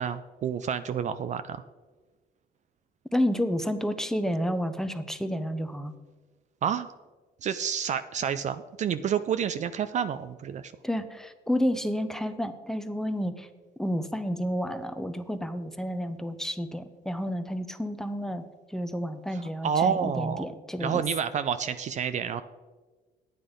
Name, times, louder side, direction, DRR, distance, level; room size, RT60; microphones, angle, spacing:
voice 1, 0.0-1.6 6.6-6.9 7.4-10.7 19.3-20.4 20.8-22.4, right 8 dB, 45° right, 11 dB, 0.5 m, -29 dB
voice 2, 3.1-5.9 10.8-13.5 13.8-18.4 18.7-21.0, equal, 5° left, 9 dB, 0.8 m, -30 dB
10.5 x 9.1 x 5.1 m, 1.3 s
cardioid pair, 110°, 17 cm